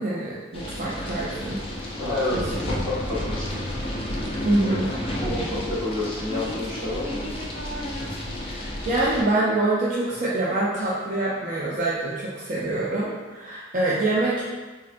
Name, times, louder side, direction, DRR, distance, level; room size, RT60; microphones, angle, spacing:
voice 1, 0.0-1.6 2.3-2.8 4.4-4.9 8.4-14.4, right 2 dB, 40° right, -7 dB, 0.4 m, -25 dB
sound 1, 0.5-9.2, left 1 dB, 30° left, 0.4 m, -31 dB
voice 2, 1.9-3.6 4.6-7.3, left 2 dB, 15° right, -11 dB, 1.1 m, -30 dB
3.9 x 2.1 x 2.5 m, 1.3 s
head